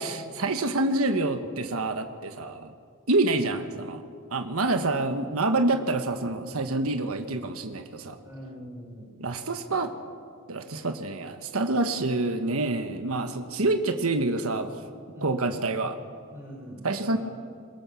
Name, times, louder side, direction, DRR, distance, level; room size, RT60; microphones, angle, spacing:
voice 1, 0.0-2.7 3.1-4.0 4.3-8.2 9.2-9.9 10.5-14.7 15.2-16.0 16.8-17.2, right 2 dB, 80° right, 7 dB, 1.3 m, -27 dB
voice 2, 8.2-9.1 9.7-9.8 15.1-15.4 16.3-17.2, equal, 10° right, -4 dB, 5.4 m, -43 dB
23.0 x 21.0 x 7.1 m, 2.3 s
head